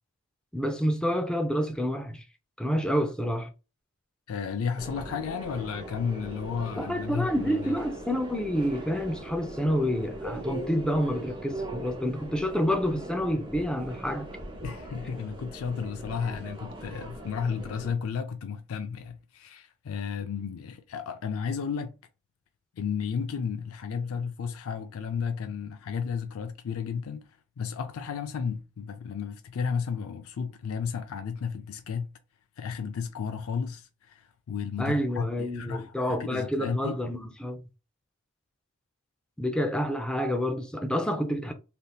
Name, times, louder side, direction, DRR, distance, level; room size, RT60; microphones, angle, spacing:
voice 1, 0.5-2.2 2.6-3.5 6.7-14.3 34.8-37.6 39.4-41.5, equal, 5° left, 0.4 m, -28 dB
voice 2, 4.3-7.8 14.6-22.0 22.8-27.2 27.6-32.1 32.6-37.0, left 6 dB, 80° left, 0.4 m, -33 dB
Subway metro underground, 4.8-17.9, right 1 dB, 25° right, 0.8 m, -40 dB
3.4 x 2.7 x 2.3 m
head